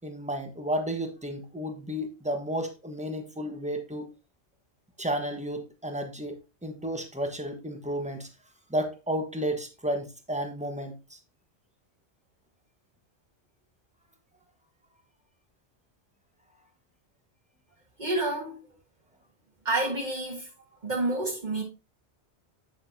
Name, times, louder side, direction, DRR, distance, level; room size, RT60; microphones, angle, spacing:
voice 1, 0.0-4.1 5.0-8.3 8.7-11.2, equal, 5° right, 1.3 m, -32 dB
voice 2, 18.0-18.6 19.7-20.5 20.8-21.6, right 2 dB, 40° right, 1.8 m, -29 dB
8.6 x 6.7 x 2.8 m
omnidirectional pair, 1.2 m